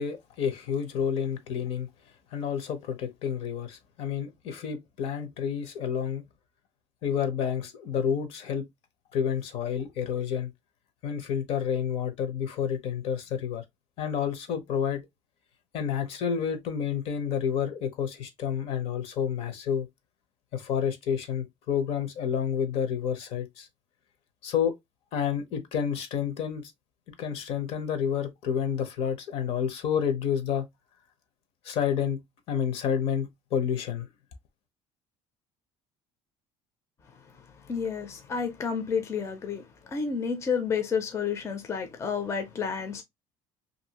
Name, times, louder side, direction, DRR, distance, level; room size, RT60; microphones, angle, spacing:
voice 1, 0.0-1.9 2.3-6.2 7.0-8.7 9.1-10.5 11.0-13.6 14.0-15.0 15.7-19.9 20.5-23.7 24.4-24.7 25.1-26.7 27.2-30.7 31.6-32.2 32.5-34.1, left 8 dB, 60° left, 0.7 m, -29 dB
voice 2, 37.7-43.0, left 6 dB, 25° left, 0.5 m, -30 dB
2.6 x 2.6 x 2.8 m
cardioid pair, 140°, 12 cm